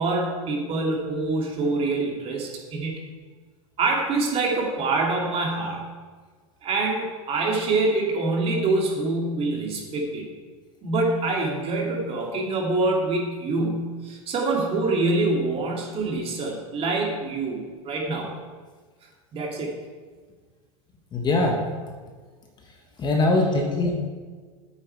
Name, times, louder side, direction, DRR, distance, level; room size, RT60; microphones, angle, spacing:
voice 1, 0.0-3.0 3.8-5.8 6.6-10.3 10.8-18.4 19.3-19.8, right 3 dB, 30° right, 0 dB, 2.6 m, -25 dB
voice 2, 21.1-21.6 23.0-23.9, left 2 dB, 25° left, 1 dB, 1.6 m, -21 dB
9.1 x 8.9 x 4.7 m, 1.5 s
hypercardioid pair, 115°, 18 cm